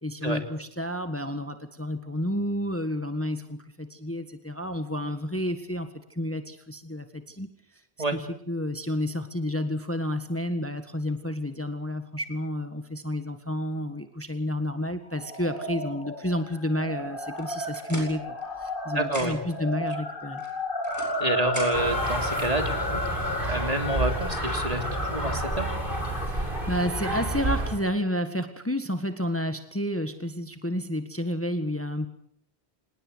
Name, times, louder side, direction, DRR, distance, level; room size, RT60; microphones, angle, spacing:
voice 1, 0.0-7.5 8.1-18.2 18.6-20.4 26.2-32.1, left 1 dB, 10° left, 8 dB, 1.6 m, -30 dB
sound 1, 15.1-27.6, left 1 dB, 50° left, 3.1 m, -33 dB
sound 2, 17.4-18.7 19.0-19.6 20.4-22.0, right 1 dB, 15° right, 8.0 m, -40 dB
voice 2, 18.9-19.4 21.2-23.2 23.5-25.8, right 1 dB, 35° right, 6 dB, 3.1 m, -29 dB
sound 3, 21.7-27.8, right 1 dB, 55° right, 5.4 m, -30 dB
26.5 x 20.0 x 8.1 m, 0.68 s
omnidirectional pair, 1.1 m